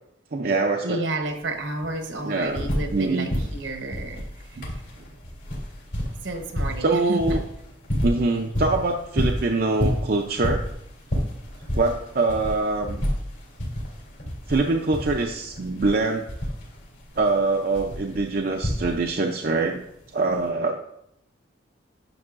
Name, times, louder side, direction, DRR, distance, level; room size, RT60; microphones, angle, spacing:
voice 1, 0.3-1.0 2.2-3.3 4.6-4.7 6.8-7.4 8.0-10.7 11.7-13.0 14.5-16.3 17.2-19.8 20.1-20.8, right 3 dB, 50° right, 2 dB, 0.5 m, -24 dB
voice 2, 0.8-4.2 4.5-4.6 6.2-7.4, right 2 dB, 70° right, 5 dB, 1.0 m, -31 dB
sound 1, 1.2-1.3 1.6-3.0 3.3-19.3 20.3-20.4, equal, 65° left, 2.8 m, -29 dB
10.5 x 6.3 x 2.5 m, 0.77 s
head